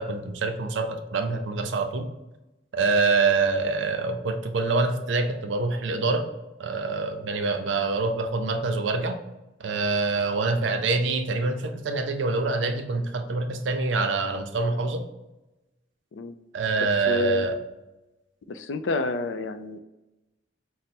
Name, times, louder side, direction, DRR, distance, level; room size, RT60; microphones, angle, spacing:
voice 1, 0.0-2.1 2.7-6.3 6.6-9.2 9.6-15.0 16.5-17.6, right 3 dB, 75° right, 7 dB, 0.5 m, -25 dB
voice 2, 16.8-17.5 18.5-19.8, left 3 dB, 80° left, 10 dB, 0.4 m, -29 dB
5.3 x 2.1 x 4.2 m, 1.0 s
head